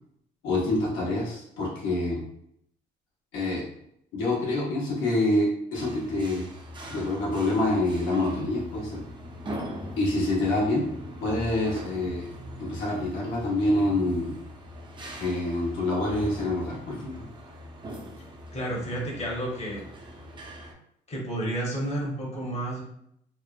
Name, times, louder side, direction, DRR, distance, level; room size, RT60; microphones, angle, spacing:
voice 1, 0.4-2.2 3.3-3.6 4.1-6.5 6.9-9.0 10.0-10.9 11.2-12.3 12.6-14.3 15.2-17.3, left 2 dB, 85° left, -5 dB, 1.0 m, -26 dB
sound 1, 5.7-20.7, equal, 25° right, 0.5 m, -41 dB
voice 2, 18.5-19.8 21.1-22.8, right 1 dB, 30° left, -3 dB, 0.9 m, -31 dB
3.0 x 2.1 x 2.3 m, 0.72 s
cardioid pair, 95°, 20 cm